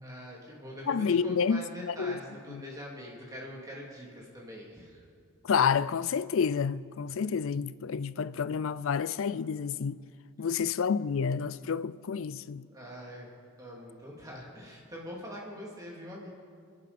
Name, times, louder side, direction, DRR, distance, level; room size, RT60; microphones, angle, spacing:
voice 1, 0.0-5.0 10.4-10.5 12.7-16.3, equal, 15° right, 2.7 m, -44 dB
voice 2, 0.9-2.2 2.5-2.6 5.4-10.0 10.4-12.7, left 6 dB, 65° left, 0.4 m, -29 dB
27.5 x 11.0 x 4.2 m
head